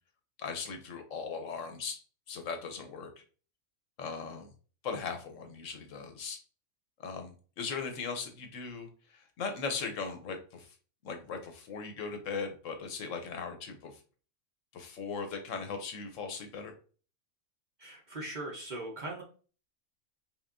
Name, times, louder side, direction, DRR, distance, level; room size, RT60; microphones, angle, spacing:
voice 1, 0.4-2.0 2.3-3.1 4.0-4.5 4.8-6.4 7.0-10.7 11.0-14.0 14.7-16.7, left 5 dB, 70° left, 5 dB, 1.0 m, -38 dB
voice 2, 17.8-19.2, right 2 dB, 40° right, -2 dB, 0.8 m, -40 dB
5.4 x 2.5 x 2.5 m, 0.39 s
omnidirectional pair, 1.5 m